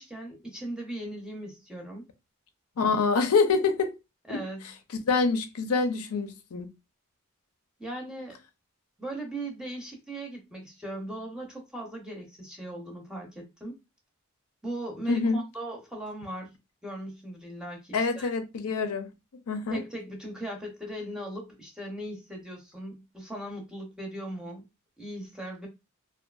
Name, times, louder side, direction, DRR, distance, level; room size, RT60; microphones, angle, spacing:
voice 1, 0.0-2.1 4.3-4.6 7.8-8.4 9.0-13.8 14.6-16.5 16.8-18.3 19.7-24.6 25.0-25.7, right 1 dB, 5° right, 0.6 m, -38 dB
voice 2, 2.8-3.9 4.3-4.4 5.1-6.7 15.1-15.4 17.9-19.1 19.5-19.8, left 4 dB, 85° left, 0.5 m, -26 dB
2.5 x 2.4 x 2.3 m
head